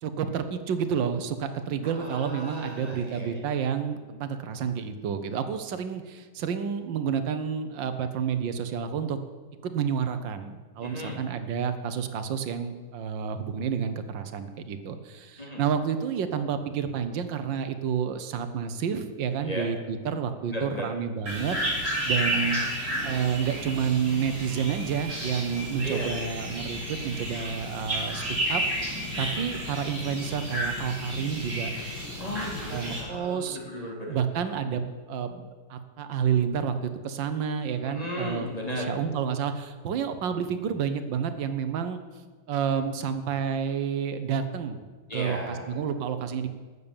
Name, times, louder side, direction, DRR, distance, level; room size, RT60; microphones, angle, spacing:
voice 1, 0.0-9.2 9.6-22.6 23.0-28.2 28.5-31.7 32.7-33.6 34.1-34.8 35.1-42.0 42.5-44.8 45.1-46.5, right 7 dB, 80° right, 10 dB, 1.6 m, -30 dB
voice 2, 1.8-3.4 10.8-11.2 15.4-15.6 19.4-19.7 20.5-20.8 25.8-26.1 32.2-34.2 37.8-38.9 45.1-45.7, equal, 20° left, -1 dB, 2.8 m, -35 dB
sound 1, 21.3-33.0, equal, 40° right, 5.3 m, -32 dB
13.5 x 6.9 x 8.8 m, 1.4 s
omnidirectional pair, 2.0 m